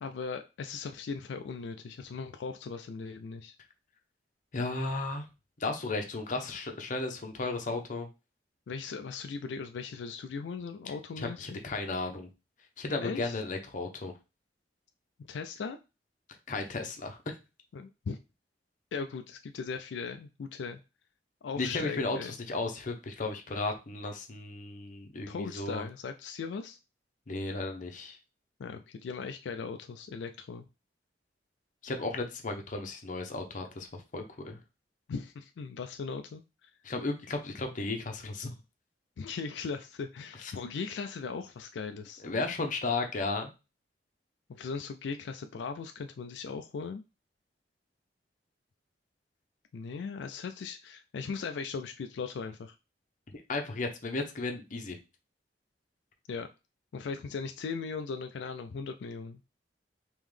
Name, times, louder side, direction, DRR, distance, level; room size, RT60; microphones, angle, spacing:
voice 1, 0.0-3.5 8.7-11.5 13.0-13.4 15.3-15.8 17.7-18.2 18.9-20.8 21.4-22.3 25.3-26.8 28.6-30.7 35.1-36.4 39.2-42.2 44.5-47.0 49.7-52.8 56.3-56.5 56.9-59.4, left 5 dB, 85° left, 7 dB, 0.4 m, -38 dB
voice 2, 4.5-5.3 5.6-8.1 11.2-12.3 12.8-14.1 16.5-17.4 21.6-25.9 27.3-28.2 31.8-34.6 36.8-38.5 40.4-40.5 42.2-43.5 53.3-55.0, left 3 dB, 45° left, 4 dB, 0.7 m, -34 dB
3.7 x 3.0 x 3.2 m, 0.28 s
head